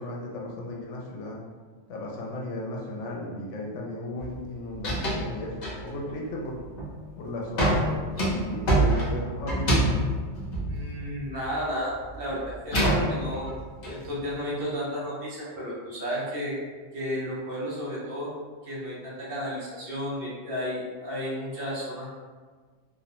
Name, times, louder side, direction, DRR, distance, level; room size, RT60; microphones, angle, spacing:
voice 1, 0.0-1.4 1.9-6.6 7.2-8.1 8.4-10.1, left 1 dB, 75° left, -2 dB, 0.9 m, -35 dB
sound 1, 4.2-4.5 4.7-5.3 5.6-6.1 6.6-7.0 7.6-11.6 11.9-13.9, right 1 dB, 45° left, 0.6 m, -26 dB
voice 2, 10.7-13.5 13.9-16.6 16.9-18.3 18.6-22.1, equal, 55° right, -6 dB, 0.8 m, -32 dB
2.5 x 2.1 x 2.8 m, 1.5 s
omnidirectional pair, 1.3 m